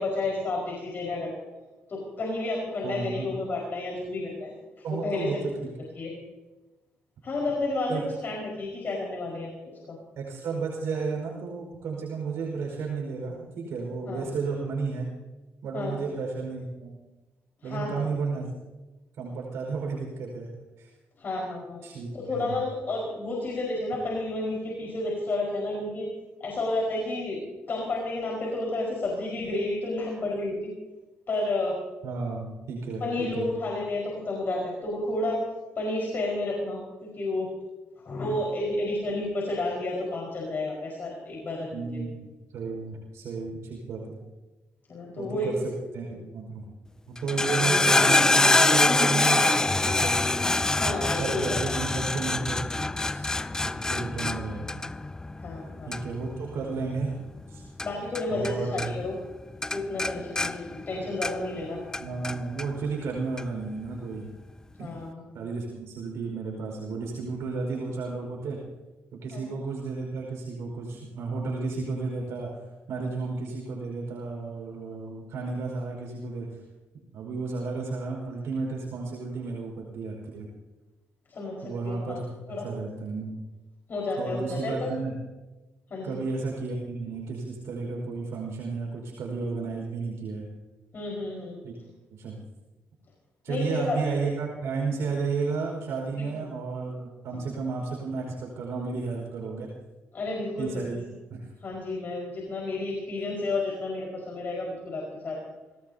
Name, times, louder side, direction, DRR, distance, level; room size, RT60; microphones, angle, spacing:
voice 1, 0.0-1.4 1.9-5.3 5.9-6.1 7.2-9.5 9.9-10.0 14.0-14.3 15.7-16.0 17.6-18.1 21.2-21.8 22.1-26.1 26.4-30.7 31.3-31.8 33.0-35.4 35.7-37.5 38.0-42.0 44.9-45.6 46.1-46.2 47.5-47.6 50.7-51.6 55.4-56.1 57.8-59.2 59.7-61.8 64.8-65.4 69.3-69.5 81.3-82.7 83.9-84.9 85.9-86.2 90.9-91.6 93.5-94.0 96.2-96.3 97.3-97.4 100.1-101.0 101.6-105.4, left 2 dB, 45° left, -2 dB, 5.0 m, -31 dB
voice 2, 2.8-3.4 4.8-5.4 7.9-8.0 10.2-15.0 15.6-16.9 17.6-18.5 19.2-20.5 20.8-20.9 21.8-22.5 32.0-33.5 41.7-42.2 42.5-44.2 45.2-45.6 45.9-46.6 47.1-50.2 51.2-53.3 53.6-54.8 55.8-57.1 57.5-57.6 58.3-58.9 62.0-64.3 64.8-64.9 65.3-68.6 69.1-76.6 77.1-80.5 81.6-83.3 84.2-85.1 86.0-90.5 91.6-91.7 92.1-92.4 93.4-99.7 100.6-101.0 101.3-101.4, right 4 dB, 80° right, -1 dB, 5.1 m, -32 dB
sound 1, 47.2-58.5 58.8-59.3 59.6-61.6 61.9-62.7 63.4-63.5, left 2 dB, 15° left, 0.4 m, -25 dB
24.0 x 19.0 x 2.9 m, 1.1 s
cardioid pair, 100°, 5 cm